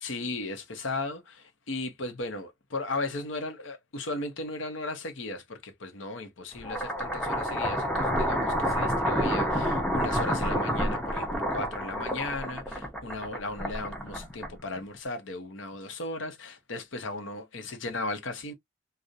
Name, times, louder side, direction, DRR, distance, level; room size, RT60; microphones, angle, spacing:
voice 1, 0.0-18.5, left 2 dB, 70° left, 0.7 m, -36 dB
sound 1, 6.6-14.8, equal, 5° left, 0.5 m, -29 dB
2.4 x 2.0 x 2.6 m
head